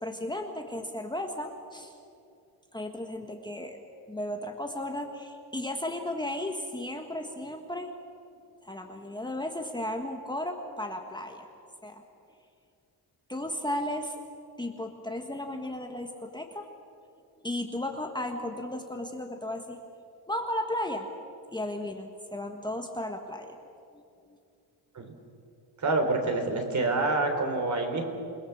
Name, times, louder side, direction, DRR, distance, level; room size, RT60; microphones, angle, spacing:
voice 1, 0.0-1.9 2.7-3.8 4.1-7.9 8.6-11.5 11.8-12.0 13.3-14.1 14.6-16.6 17.4-19.8 20.3-21.1 21.5-23.6 23.9-24.4, left 1 dB, 10° left, 3 dB, 1.5 m, -35 dB
voice 2, 25.8-28.0, right 2 dB, 45° right, 4 dB, 3.9 m, -27 dB
28.0 x 20.5 x 7.2 m, 2.5 s
cardioid pair, 135°, 41 cm